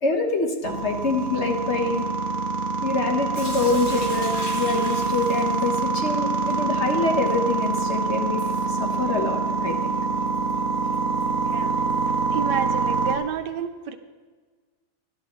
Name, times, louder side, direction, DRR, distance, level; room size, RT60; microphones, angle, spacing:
voice 1, 0.0-2.0 2.8-8.4 8.7-10.0, left 3 dB, 45° left, 2 dB, 1.4 m, -25 dB
sound 1, 0.6-13.2, right 4 dB, 60° right, 1.3 m, -25 dB
Sink (filling or washing) / Drip, 3.3-12.2, left 1 dB, 65° left, 3.3 m, -42 dB
voice 2, 12.3-14.0, right 8 dB, 90° right, 8 dB, 1.4 m, -30 dB
16.0 x 12.0 x 3.1 m, 1.4 s
omnidirectional pair, 1.8 m